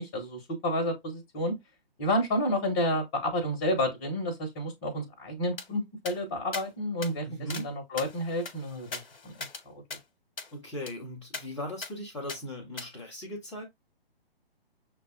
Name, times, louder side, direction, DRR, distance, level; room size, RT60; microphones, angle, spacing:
voice 1, 0.0-1.5 2.0-7.3 7.5-9.3, left 1 dB, 20° left, 0.9 m, -30 dB
sound 1, 5.6-5.7 6.0-6.2 6.5-6.7 7.0-7.1 7.5-7.7 8.0-9.6 9.9-10.0 10.4-10.5 10.9-11.0 11.3-11.4 11.8-11.9 12.3-12.4 12.8-12.9, left 3 dB, 65° left, 0.9 m, -39 dB
voice 2, 7.3-7.7 10.5-13.6, left 1 dB, 5° left, 0.5 m, -38 dB
6.4 x 2.2 x 2.2 m
figure-of-eight pair, 135°, 30 cm